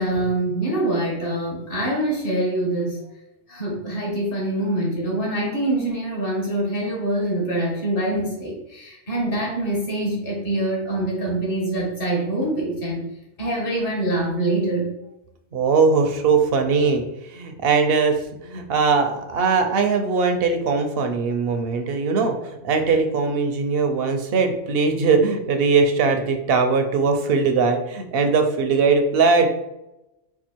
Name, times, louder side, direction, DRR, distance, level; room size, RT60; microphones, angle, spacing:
voice 1, 0.0-3.1 3.5-13.1 13.4-14.9, right 1 dB, 50° left, -3 dB, 1.6 m, -24 dB
voice 2, 15.5-29.5, right 4 dB, 60° right, 6 dB, 0.7 m, -20 dB
4.5 x 2.3 x 4.4 m, 0.89 s
omnidirectional pair, 1.3 m